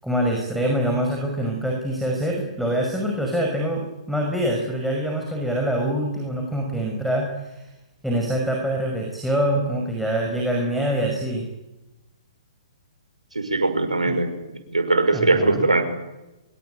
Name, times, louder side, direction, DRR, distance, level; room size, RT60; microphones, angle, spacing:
voice 1, 0.0-7.7 8.0-11.5 14.1-14.2 15.1-15.7, right 1 dB, ahead, -1 dB, 5.8 m, -25 dB
voice 2, 13.3-14.3 14.7-15.8, right 2 dB, 90° right, 7 dB, 6.2 m, -20 dB
25.0 x 23.0 x 9.4 m, 0.98 s
figure-of-eight pair, 125°, 4 cm